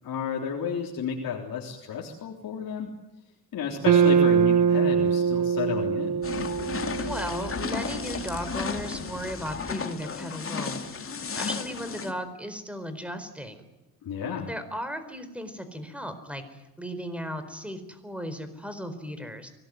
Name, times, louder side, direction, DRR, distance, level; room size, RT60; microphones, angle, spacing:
voice 1, 0.0-2.9 3.5-6.2 14.0-14.5, left 6 dB, 60° left, 0 dB, 3.7 m, -32 dB
sound 1, 3.8-8.2, right 6 dB, 60° right, 1.2 m, -23 dB
sound 2, 6.2-12.1, left 5 dB, 35° left, 2.8 m, -33 dB
voice 2, 7.1-11.0 11.3-13.7 14.5-19.5, equal, 5° right, 10 dB, 4.4 m, -36 dB
24.5 x 19.0 x 9.6 m, 1.1 s
cardioid pair, 100°, 38 cm